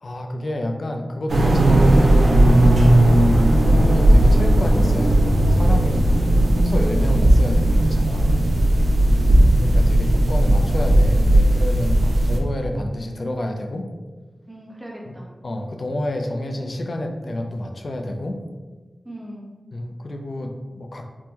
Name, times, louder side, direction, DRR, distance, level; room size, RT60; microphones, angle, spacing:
voice 1, 0.0-2.2 2.9-6.1 6.6-8.4 9.6-13.9 15.1-15.2 15.4-18.4 19.7-21.1, left 1 dB, 60° left, 4 dB, 0.3 m, -29 dB
sound 1, 1.3-12.4, right 1 dB, 75° right, 0.4 m, -16 dB
voice 2, 9.1-9.6 14.5-15.3 19.0-19.5, equal, 20° right, -4 dB, 0.8 m, -38 dB
3.4 x 2.1 x 2.8 m, 1.3 s
wide cardioid pair, 75°, 0 cm